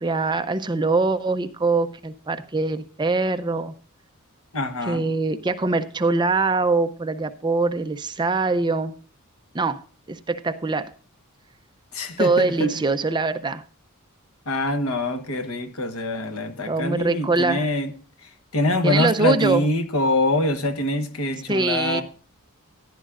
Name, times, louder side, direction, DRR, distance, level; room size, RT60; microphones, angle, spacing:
voice 1, 0.0-3.7 4.9-8.9 9.5-9.8 10.1-10.9 12.2-13.6 16.7-17.7 18.8-19.6 21.5-22.0, right 3 dB, 20° right, 9 dB, 0.5 m, -23 dB
voice 2, 4.5-5.1 11.9-12.7 14.5-17.9 18.2-22.0, left 2 dB, 70° left, 9 dB, 1.2 m, -24 dB
14.0 x 11.0 x 2.5 m, 0.39 s
head